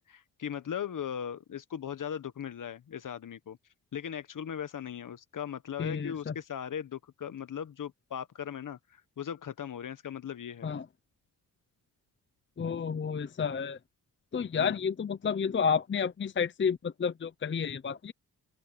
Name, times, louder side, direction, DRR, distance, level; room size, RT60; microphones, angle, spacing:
voice 1, 0.0-3.6 3.9-10.7 14.5-14.8, left 8 dB, 55° left, 1.3 m, -38 dB
voice 2, 5.8-6.3 10.6-10.9 12.6-13.8 14.3-18.1, left 6 dB, 30° left, 0.7 m, -30 dB
open air
cardioid pair, 85°, 37 cm